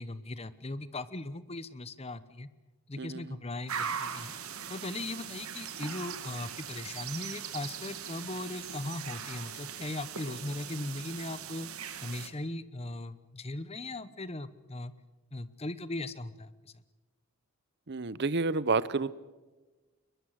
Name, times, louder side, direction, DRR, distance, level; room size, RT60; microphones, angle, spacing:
voice 1, 0.0-2.5 2.9-4.3 4.7-11.7 12.0-14.9 15.3-16.5, left 2 dB, 25° left, 15 dB, 0.9 m, -38 dB
voice 2, 3.0-3.4 17.9-19.1, right 4 dB, 50° right, 18 dB, 0.8 m, -30 dB
sound 1, 3.7-12.3, right 7 dB, 70° right, 2.1 m, -40 dB
22.5 x 21.5 x 7.9 m, 1.2 s
head